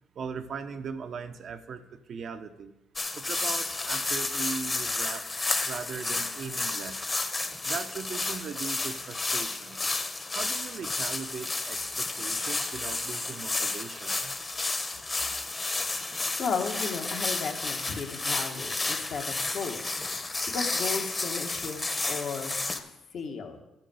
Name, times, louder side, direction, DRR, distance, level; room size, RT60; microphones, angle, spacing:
voice 1, 0.1-2.7 3.1-5.3 5.6-7.2 7.6-9.9 10.3-14.4, right 6 dB, 60° right, 9 dB, 0.9 m, -39 dB
sound 1, 3.0-22.8, left 3 dB, 30° left, 1.2 m, -31 dB
voice 2, 16.4-20.0 20.5-21.8 22.1-22.6 23.1-23.6, left 5 dB, 65° left, 3 dB, 1.7 m, -34 dB
11.0 x 4.6 x 7.9 m, 0.98 s
supercardioid pair, 60°, 0 cm